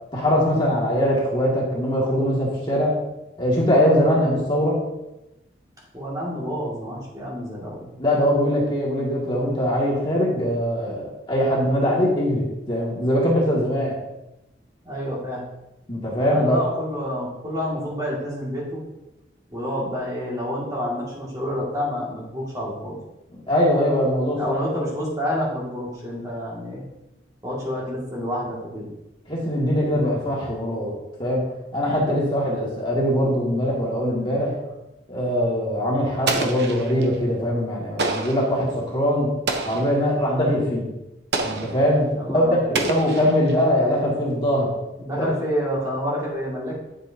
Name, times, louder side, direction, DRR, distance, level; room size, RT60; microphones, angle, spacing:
voice 1, 0.1-2.9 3.4-4.8 8.0-14.0 15.9-16.6 23.5-24.4 29.3-30.9 31.2-31.4 31.7-34.5 35.1-39.3 39.7-40.9 41.4-44.7 45.2-45.3, equal, 25° left, -5 dB, 2.2 m, -22 dB
voice 2, 5.9-7.8 14.8-15.4 16.3-18.8 19.5-23.0 24.3-26.8 27.4-28.9 42.1-42.8 45.0-46.7, equal, 20° right, -6 dB, 2.2 m, -28 dB
Explosion, 36.3-37.2 38.0-38.5 39.5-40.0 41.3-41.9 42.7-43.6, right 3 dB, 65° right, 0.9 m, -27 dB
11.0 x 6.7 x 2.8 m, 0.96 s
head